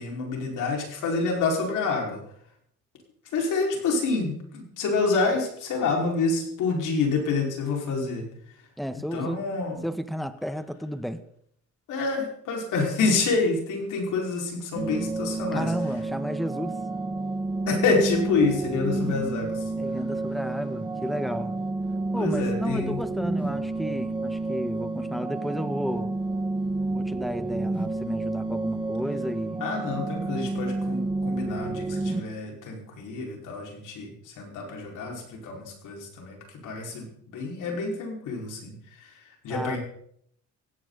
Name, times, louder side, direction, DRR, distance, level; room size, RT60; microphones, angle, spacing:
voice 1, 0.0-2.2 3.3-8.3 8.9-9.9 11.9-15.7 17.7-19.7 22.2-23.0 29.6-36.4 36.6-39.2 39.4-39.8, left 4 dB, 85° left, 0 dB, 5.3 m, -28 dB
voice 2, 8.8-9.5 9.8-11.2 15.5-16.8 19.8-21.5 22.1-26.2 26.9-29.6 39.5-39.8, equal, ahead, 10 dB, 1.5 m, -32 dB
sound 1, 14.8-32.2, right 2 dB, 15° right, 2.2 m, -30 dB
16.5 x 16.5 x 4.1 m, 0.68 s
cardioid pair, 90°, 30 cm